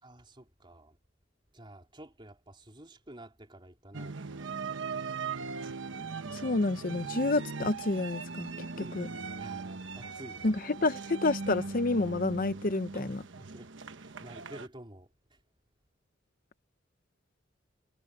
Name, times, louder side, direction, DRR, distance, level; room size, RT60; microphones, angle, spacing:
voice 1, 0.0-1.0 1.5-4.6 8.8-10.6 12.9-13.1 13.5-13.7 14.0-15.4, right 1 dB, 25° right, 4.1 m, -50 dB
sound 1, 3.9-14.7, right 4 dB, 70° right, 1.1 m, -39 dB
voice 2, 6.3-8.7 8.9-9.1 10.4-13.2, left 2 dB, 45° left, 0.8 m, -29 dB
head